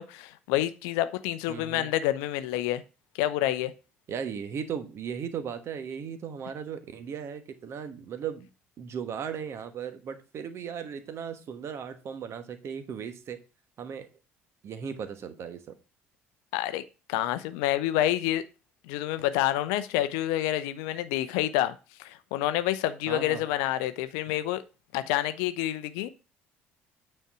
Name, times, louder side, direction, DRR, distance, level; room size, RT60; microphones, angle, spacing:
voice 1, 0.0-2.8 3.2-3.7 16.5-16.8 17.1-18.4 18.9-21.7 22.0-24.6 24.9-26.1, left 13 dB, 60° left, 0.6 m, -28 dB
voice 2, 1.5-1.9 4.1-8.5 8.8-13.4 13.8-14.1 14.6-15.7 23.1-23.4, right 7 dB, 45° right, 1.2 m, -37 dB
9.1 x 4.4 x 4.8 m
figure-of-eight pair, 55°, 7 cm